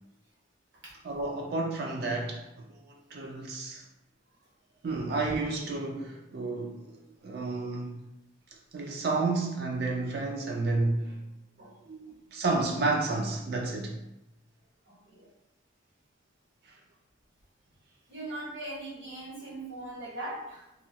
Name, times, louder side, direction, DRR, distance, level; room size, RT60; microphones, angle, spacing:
voice 1, 1.0-2.4 2.7-3.8 4.8-8.0 8.7-11.2 11.9-13.9 16.7-16.8, right 3 dB, 55° right, 0 dB, 0.4 m, -31 dB
voice 2, 14.9-15.3 18.1-20.7, right 1 dB, 75° right, -6 dB, 1.2 m, -40 dB
2.9 x 2.3 x 2.7 m, 0.88 s
head